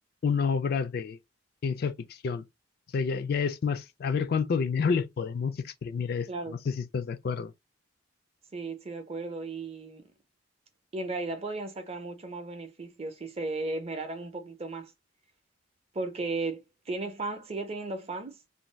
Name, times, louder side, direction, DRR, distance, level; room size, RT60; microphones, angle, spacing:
voice 1, 0.2-1.2 1.6-1.9 2.2-2.4 2.9-7.5, left 5 dB, 50° left, 0.3 m, -29 dB
voice 2, 6.3-6.6 8.5-10.0 10.9-14.9 15.9-18.4, right 3 dB, 30° right, 0.5 m, -35 dB
2.6 x 2.2 x 3.1 m
head